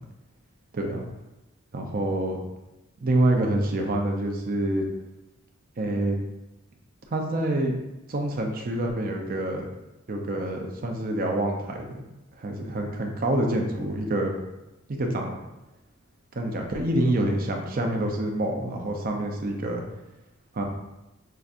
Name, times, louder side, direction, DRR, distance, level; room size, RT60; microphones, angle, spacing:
voice 1, 0.7-1.1 1.7-2.4 3.0-4.9 5.8-6.2 7.1-7.7 8.1-9.6 10.1-12.0 12.4-14.3 14.9-15.4 16.3-19.8 20.5-20.6, right 1 dB, 45° right, 2 dB, 0.5 m, -26 dB
5.6 x 2.5 x 2.4 m, 0.97 s
head